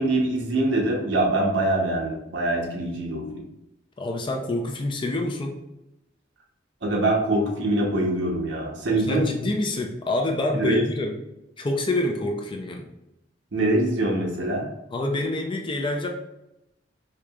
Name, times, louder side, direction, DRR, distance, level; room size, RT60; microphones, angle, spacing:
voice 1, 0.0-3.4 6.8-9.5 10.6-10.8 13.5-14.7, right 1 dB, 70° right, -1 dB, 0.9 m, -24 dB
voice 2, 4.0-5.6 8.9-11.2 11.6-12.9 14.9-16.1, left 2 dB, 25° left, 2 dB, 0.4 m, -27 dB
4.7 x 2.7 x 2.3 m, 0.89 s
head